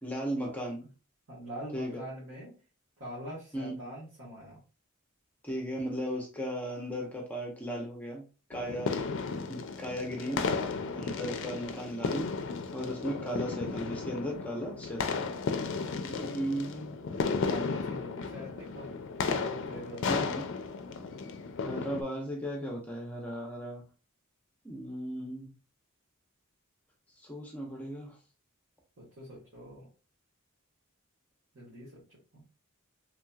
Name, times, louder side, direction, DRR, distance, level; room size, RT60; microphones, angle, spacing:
voice 1, 0.0-0.8 1.7-2.0 3.5-3.8 5.4-8.2 8.5-9.0 9.5-10.4 10.9-12.3 12.7-15.2 16.0-17.0 20.1-20.4 21.6-23.8 24.6-25.5 27.2-28.2, equal, 5° left, -1 dB, 0.6 m, -36 dB
voice 2, 1.3-2.6 3.0-4.6 17.2-18.9 19.4-20.1 29.0-29.9 31.5-32.4, equal, 65° right, -8 dB, 1.5 m, -44 dB
sound 1, 8.5-22.0, left 4 dB, 60° left, 0.4 m, -34 dB
3.3 x 2.8 x 2.3 m, 0.34 s
head